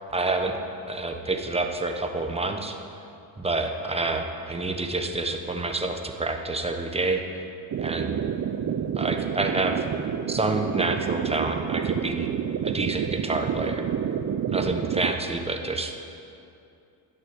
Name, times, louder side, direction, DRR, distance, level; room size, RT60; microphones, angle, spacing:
voice 1, 0.1-0.6 0.9-2.8 3.4-7.2 7.8-8.1 9.0-9.8 10.3-12.3 12.6-13.9 14.5-16.0, right 2 dB, 15° right, 5 dB, 1.1 m, -28 dB
sound 1, 7.7-15.1, right 8 dB, 40° right, 0.5 m, -29 dB
12.0 x 6.5 x 9.6 m, 2.6 s
cardioid pair, 105°, 45 cm